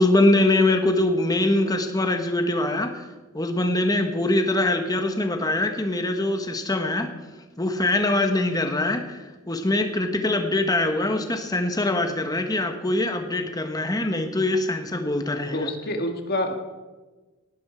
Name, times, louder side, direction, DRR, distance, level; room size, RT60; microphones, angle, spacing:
voice 1, 0.0-3.1 3.3-7.1 7.6-15.7, left 2 dB, 15° left, 6 dB, 1.3 m, -23 dB
voice 2, 15.5-16.6, left 1 dB, 45° left, 5 dB, 1.7 m, -27 dB
19.0 x 11.0 x 4.5 m, 1.2 s
head